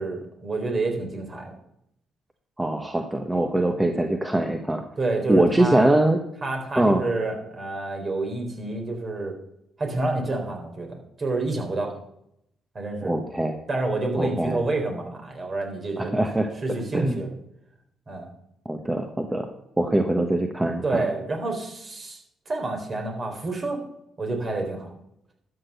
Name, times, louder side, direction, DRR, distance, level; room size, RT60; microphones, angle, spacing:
voice 1, 0.0-1.5 5.0-5.9 6.4-9.4 9.8-11.9 12.7-13.2 13.7-16.1 16.6-17.3 18.1-18.3 20.8-22.2 22.5-23.8 24.2-24.9, right 2 dB, 45° right, 2 dB, 3.9 m, -28 dB
voice 2, 2.6-4.8 5.3-6.2 6.8-7.0 13.0-13.6 14.2-14.6 16.0-16.5 16.9-17.2 18.6-19.5 19.8-21.0, right 1 dB, 15° right, 5 dB, 1.2 m, -22 dB
12.5 x 6.3 x 6.8 m, 0.77 s
supercardioid pair, 55°, 0 cm